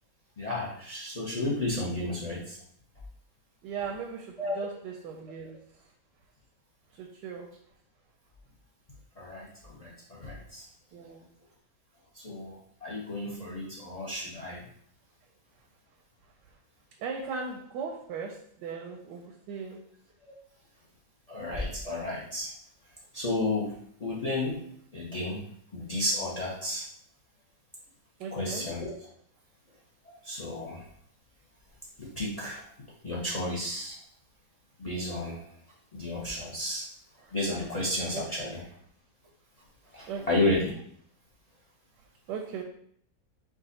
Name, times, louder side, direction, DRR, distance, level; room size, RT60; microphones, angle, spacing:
voice 1, 0.4-2.6 4.4-4.6 9.2-10.6 12.1-14.7 20.3-20.4 21.3-22.5 23.1-23.7 24.0-24.6 24.9-25.4 25.7-26.8 28.3-29.0 30.2-30.8 32.0-32.6 33.0-34.0 34.8-35.4 35.9-36.8 37.3-38.7 39.9-40.8, left 1 dB, 45° left, -4 dB, 0.5 m, -32 dB
voice 2, 3.6-5.6 7.0-7.5 10.9-11.3 17.0-19.8 28.2-28.7 38.1-38.5 40.1-40.4 42.3-42.6, right 6 dB, 90° right, 1 dB, 1.2 m, -38 dB
4.8 x 2.4 x 4.0 m, 0.63 s
omnidirectional pair, 1.8 m